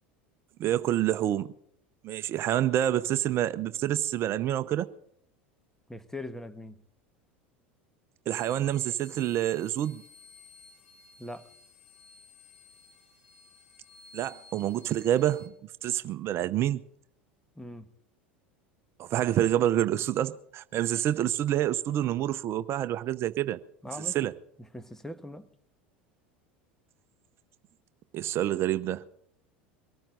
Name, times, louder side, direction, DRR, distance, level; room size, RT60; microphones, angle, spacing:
voice 1, 0.6-1.5 2.0-4.9 8.3-10.0 14.1-15.5 15.8-16.8 19.0-23.6 24.0-24.3 28.1-29.0, right 12 dB, 45° right, 0.7 m, -27 dB
voice 2, 5.9-6.8 11.2-11.5 17.6-17.9 23.8-24.3 24.7-25.5, left 1 dB, 5° left, 1.2 m, -41 dB
sound 1, 8.3-15.5, left 3 dB, 80° left, 4.3 m, -55 dB
23.5 x 13.5 x 3.9 m
hypercardioid pair, 85°, 6 cm